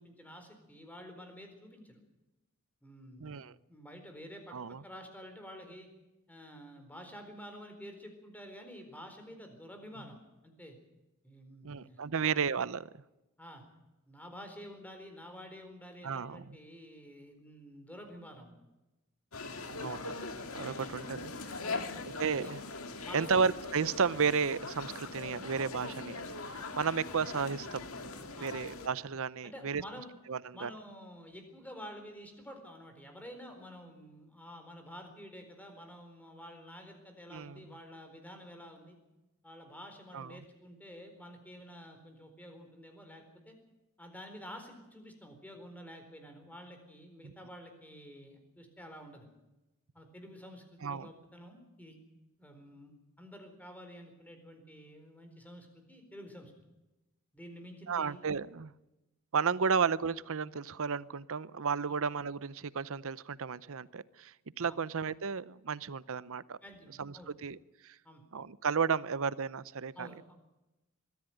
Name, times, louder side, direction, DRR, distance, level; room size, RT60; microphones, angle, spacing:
voice 1, 0.0-2.0 2.8-3.4 3.7-4.5 4.8-5.9 6.3-10.8 11.2-12.4 13.4-13.6 14.1-18.6 19.4-20.0 21.6-22.5 23.0-23.4 28.3-28.6 29.4-30.1 30.5-39.0 39.4-43.5 44.0-49.3 49.9-52.0 52.4-56.5 57.3-58.2 64.6-64.8 66.6-67.3 68.0-68.2 70.0-70.3, equal, 5° left, 5 dB, 4.2 m, -50 dB
voice 2, 3.2-3.5 4.5-4.8 11.6-12.9 16.0-16.5 19.7-20.1 20.5-21.3 22.2-22.6 23.1-27.9 28.4-29.8 30.3-30.7 37.3-37.6 40.1-40.4 47.2-47.3 50.8-51.1 57.9-58.7 59.3-66.6 67.0-67.1 67.4-67.6 67.8-67.9 68.3-70.1, right 6 dB, 65° right, 18 dB, 0.7 m, -33 dB
sound 1, 19.3-28.9, left 3 dB, 70° left, 2.1 m, -41 dB
21.5 x 14.5 x 9.1 m, 1.0 s
head